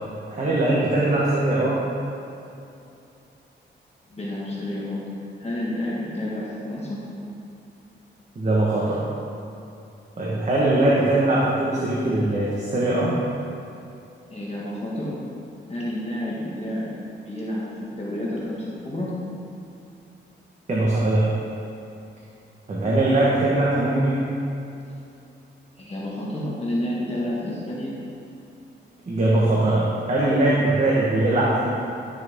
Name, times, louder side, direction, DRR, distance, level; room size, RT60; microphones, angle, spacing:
voice 1, 0.3-1.8 8.3-9.0 10.2-13.1 20.7-21.3 22.7-24.2 29.1-31.7, right 2 dB, 35° right, -6 dB, 1.4 m, -21 dB
voice 2, 4.1-5.1 5.4-7.1 14.3-15.2 15.7-16.9 17.2-19.2 25.8-27.9, left 1 dB, 35° left, -6 dB, 1.7 m, -30 dB
12.0 x 6.6 x 3.7 m, 2.7 s
wide cardioid pair, 110°, 20 cm